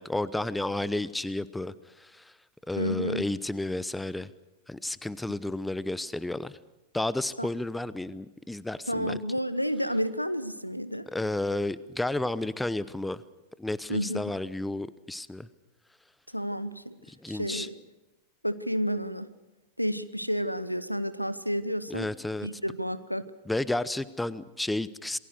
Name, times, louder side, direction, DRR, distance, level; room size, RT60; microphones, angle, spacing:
voice 1, 0.0-1.7 2.0-2.2 2.7-4.3 4.7-6.6 6.9-9.2 11.1-13.2 13.6-15.5 17.2-17.7 21.9-22.5 23.5-25.2, left 2 dB, 5° left, 18 dB, 0.8 m, -31 dB
voice 2, 2.8-3.2 7.4-7.5 8.9-11.1 13.9-14.3 16.3-16.9 17.3-17.8 18.4-19.3 19.8-22.1 22.4-23.3, equal, 90° left, 15 dB, 1.0 m, -30 dB
27.5 x 20.5 x 6.6 m, 1.0 s
figure-of-eight pair, 90°, 0 cm